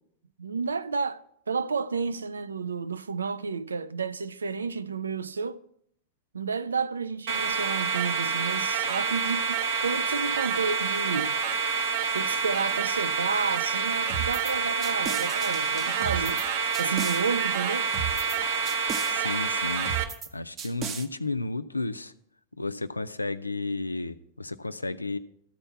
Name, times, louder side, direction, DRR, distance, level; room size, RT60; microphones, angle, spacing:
voice 1, 0.4-5.6 6.3-11.4 12.1-16.4 16.8-17.9, right 5 dB, 75° right, 0.3 m, -31 dB
sound 1, 7.3-20.0, right 6 dB, 55° right, 0.8 m, -28 dB
sound 2, 14.1-14.5 14.8-16.4 16.7-17.2 17.9-18.4 18.7-19.1 19.9-20.3 20.6-21.1, right 8 dB, 30° right, 0.8 m, -34 dB
voice 2, 19.1-20.0 20.3-22.1 22.6-25.2, left 3 dB, 80° left, 0.4 m, -32 dB
13.0 x 4.4 x 7.0 m
figure-of-eight pair, 90°, 0 cm